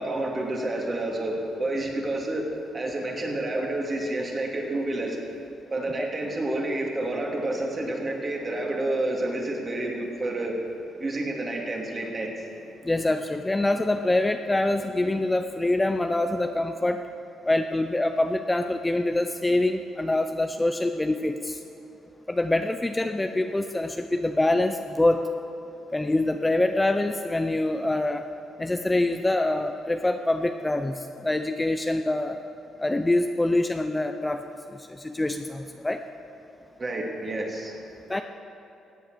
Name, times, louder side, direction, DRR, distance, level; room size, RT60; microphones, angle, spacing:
voice 1, 0.0-2.4 2.7-5.2 5.7-10.6 11.0-12.3 36.8-37.8, right 1 dB, 35° right, 0 dB, 2.6 m, -29 dB
voice 2, 12.8-17.0 17.5-21.6 22.3-25.3 25.9-28.3 28.6-32.4 32.8-36.0 38.1-38.2, left 2 dB, 15° left, 7 dB, 0.5 m, -25 dB
15.5 x 8.5 x 6.7 m, 2.9 s
cardioid pair, 90°, 0 cm